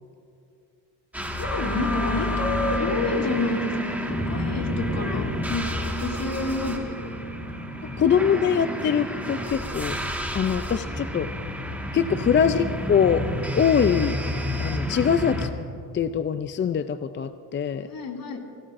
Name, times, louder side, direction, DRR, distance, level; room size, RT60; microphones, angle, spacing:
sound 1, 1.1-15.5, left 1 dB, 5° right, 1.7 m, -30 dB
voice 1, 1.2-7.0 7.9-8.2 17.8-18.4, left 4 dB, 55° left, 0 dB, 2.7 m, -30 dB
Piano, 1.7-10.2, right 1 dB, 80° right, 3.5 m, -35 dB
voice 2, 7.8-10.0 10.3-11.3 11.9-13.3 13.6-14.2 14.6-15.5 15.9-17.9, left 7 dB, 30° left, 11 dB, 0.4 m, -23 dB
25.5 x 17.5 x 2.6 m, 2.5 s
cardioid pair, 110°, 43 cm